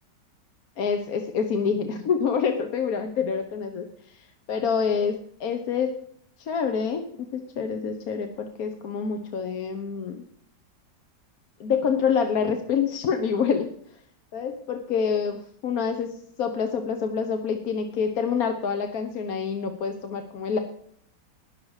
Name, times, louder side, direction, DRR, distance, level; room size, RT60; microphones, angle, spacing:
voice 1, 0.8-5.9 6.4-7.0 7.3-10.2 11.6-13.7 14.3-20.6, left 6 dB, 60° left, 6 dB, 1.3 m, -27 dB
19.0 x 6.8 x 4.8 m, 0.67 s
omnidirectional pair, 1.9 m